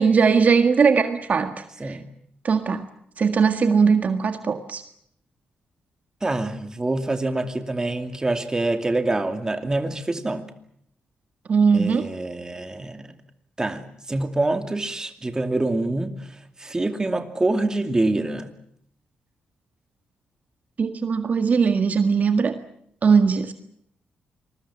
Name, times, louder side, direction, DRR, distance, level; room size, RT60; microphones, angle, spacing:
voice 1, 0.0-2.0 2.4-2.8 3.2-4.8 11.5-12.1 20.8-22.6 23.0-23.5, right 5 dB, 50° right, 8 dB, 1.7 m, -20 dB
voice 2, 6.2-10.5 11.7-13.1 13.6-16.1 16.6-18.5, right 2 dB, 20° right, 7 dB, 2.5 m, -25 dB
26.5 x 21.0 x 7.4 m, 0.68 s
cardioid pair, 105°, 3 cm